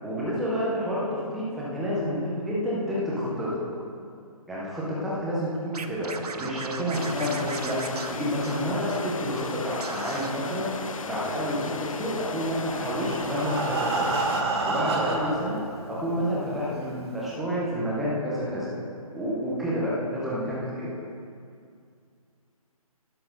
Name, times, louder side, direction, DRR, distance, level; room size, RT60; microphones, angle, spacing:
voice 1, 0.0-3.5 4.5-6.1 6.4-7.8 8.1-10.7 11.0-14.1 14.7-15.6 15.9-18.7 19.1-20.9, equal, ahead, -8 dB, 0.4 m, -29 dB
Scratching (performance technique), 5.7-9.1 9.3-9.5 9.8-10.3, right 4 dB, 85° right, 0.8 m, -37 dB
sound 1, 6.9-14.4, left 5 dB, 60° left, 0.7 m, -36 dB
Breathing, 12.6-15.5 16.3-16.4 16.7-16.8 17.3-17.4, right 3 dB, 45° right, 1.3 m, -28 dB
10.5 x 5.8 x 6.4 m, 2.4 s
hypercardioid pair, 165°, 19 cm